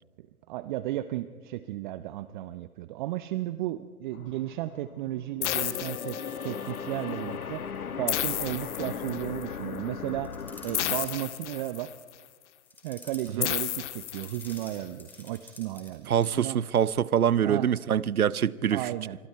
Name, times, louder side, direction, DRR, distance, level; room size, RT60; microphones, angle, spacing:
voice 1, 0.2-6.2 6.4-10.3 10.6-11.9 12.8-16.6 17.4-17.7 18.7-19.2, right 15 dB, 35° right, 0.7 m, -34 dB
sound 1, 4.1-11.1, left 7 dB, 80° left, 1.5 m, -38 dB
sound 2, 5.4-6.8 8.1-9.4 10.7-12.1 13.4-14.8, left 12 dB, 55° left, 1.7 m, -32 dB
sound 3, 10.2-11.3 12.7-13.4 14.0-15.9 16.2-16.4, left 2 dB, 5° left, 5.3 m, -48 dB
voice 2, 16.1-18.9, right 9 dB, 80° right, 0.8 m, -25 dB
28.5 x 26.0 x 4.6 m
figure-of-eight pair, 120°, 43 cm